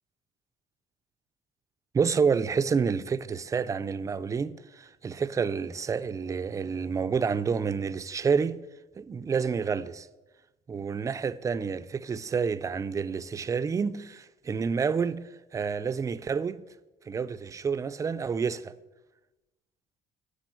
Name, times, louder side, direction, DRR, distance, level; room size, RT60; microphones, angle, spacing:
voice 1, 1.9-8.6 8.9-10.1 10.7-15.2 15.5-16.6 17.1-18.7, right 6 dB, 20° right, 0.4 m, -29 dB
15.0 x 5.1 x 9.1 m
cardioid pair, 175°, 18 cm